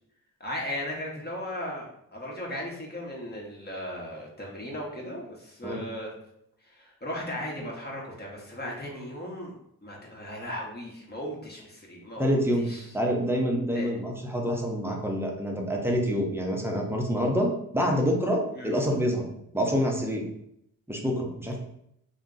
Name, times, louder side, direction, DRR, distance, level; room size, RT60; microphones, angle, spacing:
voice 1, 0.4-6.1 6.6-9.5 9.8-12.9 13.7-13.9 18.5-18.7, left 1 dB, 25° left, -3 dB, 1.1 m, -37 dB
voice 2, 12.2-12.6 12.9-19.3 19.5-20.2 20.9-21.6, equal, 5° right, 1 dB, 0.8 m, -27 dB
2.5 x 2.2 x 3.9 m, 0.75 s
cardioid pair, 55°, 37 cm